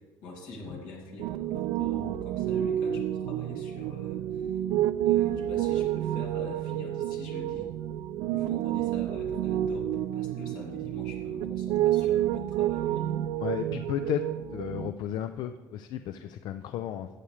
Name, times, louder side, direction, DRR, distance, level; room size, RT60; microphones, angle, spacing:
voice 1, 0.2-4.6 5.0-7.7 8.3-13.2, left 2 dB, 90° left, -1 dB, 2.7 m, -44 dB
Piano, 1.2-14.9, right 12 dB, 90° right, 0.3 m, -29 dB
voice 2, 13.4-17.1, left 11 dB, 70° left, 9 dB, 0.4 m, -34 dB
14.0 x 8.6 x 3.3 m, 1.3 s
cardioid pair, 135°, 8 cm